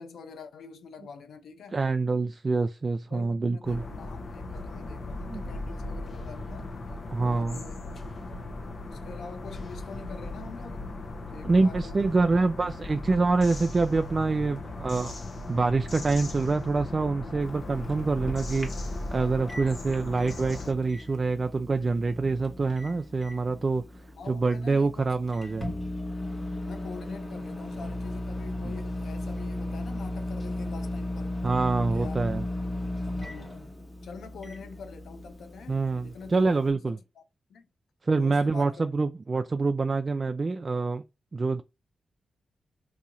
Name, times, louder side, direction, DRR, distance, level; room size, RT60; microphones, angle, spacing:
voice 1, 0.0-1.8 3.1-6.7 7.2-7.8 8.8-10.9 11.3-12.0 24.2-25.3 25.6-26.2 26.6-31.4 31.9-32.3 32.7-37.2 37.5-37.7 38.1-38.8, left 5 dB, 85° left, 0.6 m, -45 dB
voice 2, 1.7-3.8 5.3-5.4 7.1-7.6 11.4-15.2 15.5-18.7 19.1-23.8 24.3-25.7 28.6-28.7 31.4-32.4 35.7-37.0 38.0-41.0 41.3-41.6, right 3 dB, 40° right, 0.3 m, -26 dB
sound 1, 3.6-20.7, left 2 dB, 60° left, 1.0 m, -37 dB
Microwave oven, 17.4-36.7, left 1 dB, 35° left, 1.4 m, -36 dB
3.0 x 2.7 x 3.8 m
cardioid pair, 65°, 0 cm